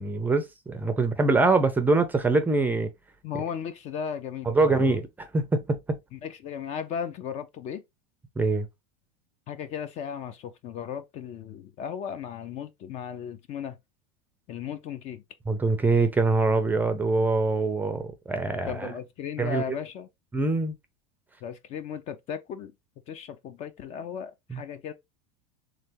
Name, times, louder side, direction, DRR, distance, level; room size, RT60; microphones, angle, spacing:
voice 1, 0.0-2.9 4.5-5.8 8.4-8.7 15.5-19.0 19.4-19.8 20.3-20.7 24.5-24.6, right 3 dB, 10° right, 0.5 m, -24 dB
voice 2, 3.2-4.8 6.1-7.8 9.5-13.8 14.5-15.2 18.7-20.1 21.4-22.7 23.1-24.9, left 8 dB, 35° left, 0.5 m, -36 dB
3.7 x 3.2 x 2.9 m
supercardioid pair, 140°, 19 cm